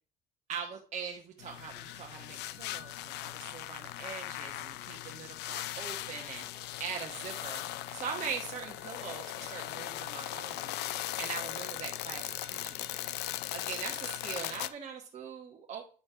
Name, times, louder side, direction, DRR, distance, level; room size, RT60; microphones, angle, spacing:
voice 1, 0.5-7.6 7.9-10.8 11.2-13.1 13.5-15.8, right 7 dB, 45° right, 0 dB, 1.1 m, -42 dB
sound 1, 1.4-14.7, left 14 dB, 85° left, 0.5 m, -39 dB
9.5 x 3.2 x 5.5 m, 0.39 s
cardioid pair, 110°, 17 cm